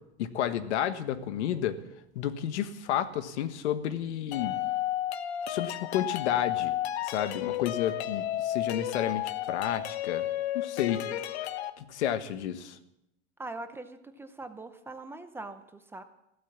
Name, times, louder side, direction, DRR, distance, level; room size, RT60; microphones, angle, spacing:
voice 1, 0.2-1.8 2.1-4.6 5.5-6.7 7.0-10.3 10.5-11.0 11.8-12.8, left 10 dB, 85° left, 11 dB, 1.5 m, -31 dB
sound 1, 4.3-11.7, left 13 dB, 70° left, 1.1 m, -32 dB
voice 2, 13.4-16.0, right 2 dB, 5° right, 8 dB, 0.7 m, -42 dB
15.5 x 13.0 x 7.2 m, 0.84 s
supercardioid pair, 160°, 33 cm